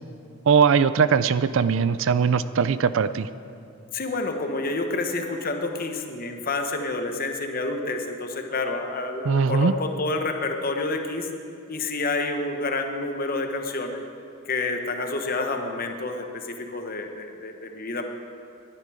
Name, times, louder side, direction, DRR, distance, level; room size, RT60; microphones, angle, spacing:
voice 1, 0.5-3.3 9.3-9.7, right 6 dB, 65° right, 14 dB, 0.4 m, -20 dB
voice 2, 3.9-11.3 11.7-14.0 14.5-18.1, left 3 dB, 45° left, 4 dB, 1.2 m, -29 dB
20.0 x 12.0 x 5.0 m, 2.5 s
head